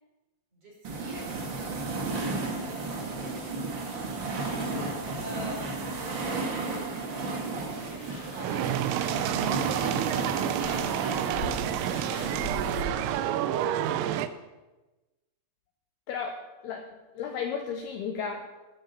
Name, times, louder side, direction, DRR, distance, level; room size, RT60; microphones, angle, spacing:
sound 1, 0.8-12.8, right 3 dB, 65° right, 1.1 m, -33 dB
voice 1, 1.0-3.2 5.2-5.7 6.0-6.3 6.9-9.0, right 1 dB, 30° right, -3 dB, 5.1 m, -47 dB
voice 2, 4.6-5.0 16.1-16.9 17.2-18.5, left 6 dB, 75° left, 4 dB, 2.5 m, -34 dB
sound 2, 8.0-13.2, left 1 dB, 30° left, 3.8 m, -41 dB
sound 3, 8.4-14.3, right 11 dB, 90° right, 3.4 m, -29 dB
17.0 x 9.9 x 6.9 m, 1.1 s
omnidirectional pair, 5.7 m